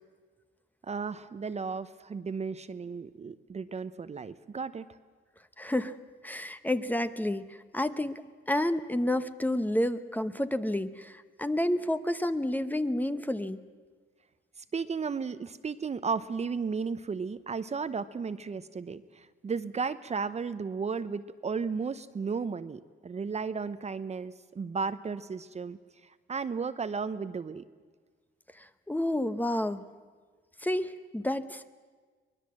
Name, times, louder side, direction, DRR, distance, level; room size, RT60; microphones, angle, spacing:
voice 1, 0.8-4.9 14.6-27.6, right 5 dB, 35° right, 12 dB, 0.8 m, -34 dB
voice 2, 5.6-6.0 6.2-13.6 28.6-29.8 30.6-31.7, left 1 dB, 10° left, 11 dB, 0.9 m, -30 dB
23.5 x 20.0 x 7.6 m, 1.5 s
cardioid pair, 90°, 20 cm